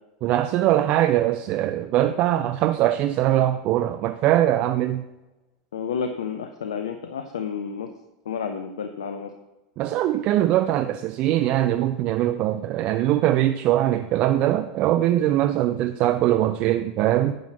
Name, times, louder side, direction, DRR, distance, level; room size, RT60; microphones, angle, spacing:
voice 1, 0.2-5.0 9.8-17.4, right 13 dB, 45° right, 11 dB, 0.4 m, -22 dB
voice 2, 5.7-7.9 8.3-9.3, left 6 dB, 70° left, 7 dB, 0.6 m, -30 dB
9.3 x 6.2 x 5.7 m, 1.1 s
figure-of-eight pair, 85°, 3 cm